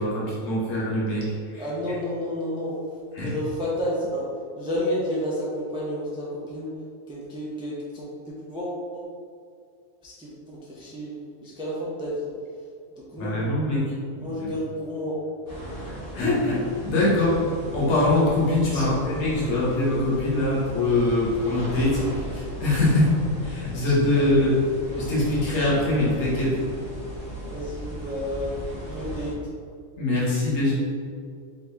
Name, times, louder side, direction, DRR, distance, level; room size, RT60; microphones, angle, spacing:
voice 1, 0.0-1.6 3.1-3.3 13.2-13.9 14.4-14.5 15.8-17.5 17.7-24.7 24.9-26.6 30.0-30.7, left 2 dB, 55° left, -7 dB, 1.4 m, -23 dB
voice 2, 1.6-2.7 3.2-4.3 4.6-6.7 7.1-9.1 10.0-11.1 11.4-12.3 13.0-13.5 14.2-15.2 18.7-19.0 24.2-24.6 27.5-29.3, equal, 5° right, -6 dB, 0.4 m, -31 dB
sound 1, 15.5-29.3, right 1 dB, 85° left, 1.6 m, -37 dB
4.6 x 2.7 x 3.5 m, 2.3 s
omnidirectional pair, 1.5 m